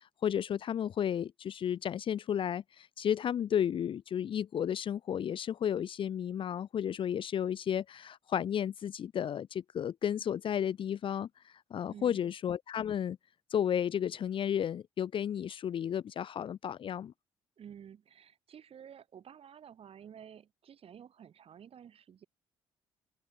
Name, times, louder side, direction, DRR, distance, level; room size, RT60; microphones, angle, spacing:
voice 1, 0.2-11.3 11.7-13.2 13.5-17.1, left 9 dB, 45° left, 0.5 m, -33 dB
voice 2, 11.9-12.3 17.6-22.3, right 8 dB, 55° right, 6.6 m, -52 dB
open air
hypercardioid pair, 50°, 12 cm